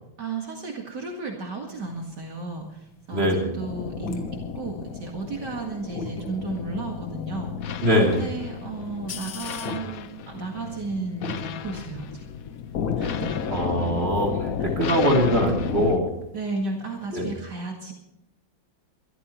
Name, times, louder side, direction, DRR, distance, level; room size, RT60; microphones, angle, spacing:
voice 1, 0.2-4.2 4.5-7.5 8.0-12.3 13.0-13.4 14.6-14.8 16.3-17.9, right 3 dB, 60° right, 0 dB, 2.6 m, -33 dB
sound 1, 1.9-2.9 3.3-10.9 11.2-11.8 12.0-17.3, left 3 dB, 85° left, 2.5 m, -38 dB
voice 2, 3.1-3.6 7.8-8.3 13.5-16.1 17.1-17.3, equal, 30° right, 0 dB, 3.5 m, -22 dB
sound 2, 3.6-16.0, left 8 dB, 60° left, 1.1 m, -33 dB
24.0 x 13.0 x 3.1 m, 0.86 s
omnidirectional pair, 2.1 m